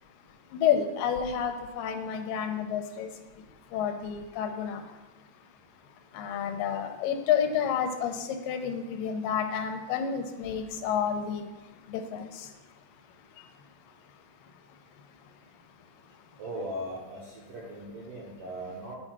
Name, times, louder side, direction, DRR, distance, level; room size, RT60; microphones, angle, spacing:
voice 1, 0.5-3.1 3.7-4.8 6.1-11.5 11.9-12.5, left 8 dB, 85° left, 6 dB, 2.3 m, -29 dB
voice 2, 16.4-19.0, right 1 dB, 70° right, -5 dB, 1.4 m, -38 dB
6.1 x 4.5 x 6.0 m, 1.1 s
omnidirectional pair, 3.9 m